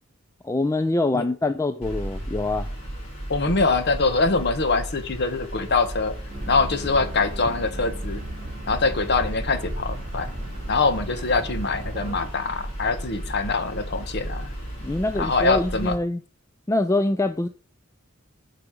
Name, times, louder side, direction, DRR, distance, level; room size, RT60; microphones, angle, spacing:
voice 1, 0.4-2.7 14.8-16.2 16.7-17.5, left 2 dB, 15° left, 0.4 m, -24 dB
sound 1, 1.8-15.9, right 1 dB, 30° left, 3.8 m, -35 dB
voice 2, 3.3-6.2 6.5-8.2 8.7-10.3 10.7-14.5 15.2-15.9, left 3 dB, 55° left, 1.1 m, -24 dB
sound 2, 6.3-12.3, right 1 dB, 35° right, 1.4 m, -36 dB
8.5 x 4.9 x 6.1 m
head